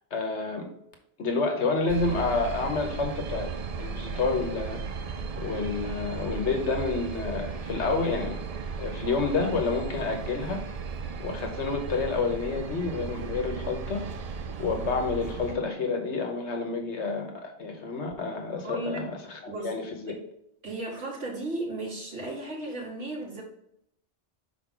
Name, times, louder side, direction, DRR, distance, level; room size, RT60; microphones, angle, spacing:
voice 1, 0.1-0.7 1.2-3.5 3.8-4.8 5.4-8.4 8.8-10.6 11.2-14.1 14.6-20.1, left 4 dB, 75° left, 3 dB, 1.3 m, -29 dB
sound 1, 1.9-15.6, right 5 dB, 60° right, 0.4 m, -36 dB
voice 2, 18.6-19.1 19.5-19.7 20.1-20.2 20.6-23.4, right 2 dB, 80° right, -5 dB, 2.5 m, -35 dB
6.0 x 4.6 x 3.7 m, 0.75 s
omnidirectional pair, 1.2 m